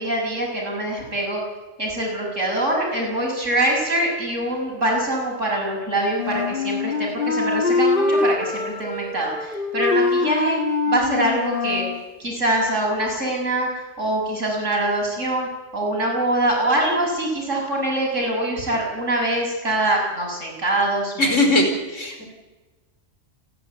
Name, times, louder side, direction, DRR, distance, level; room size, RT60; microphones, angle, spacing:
voice 1, 0.0-1.4 1.8-10.6 10.9-11.9 12.2-21.4, right 1 dB, 70° right, -1 dB, 7.0 m, -24 dB
Wind instrument woodwind instrument, 6.2-12.0, left 3 dB, 45° left, 1.7 m, -23 dB
voice 2, 21.2-22.2, left 1 dB, 70° left, 3 dB, 5.1 m, -20 dB
29.0 x 11.0 x 9.5 m, 1.2 s
omnidirectional pair, 1.3 m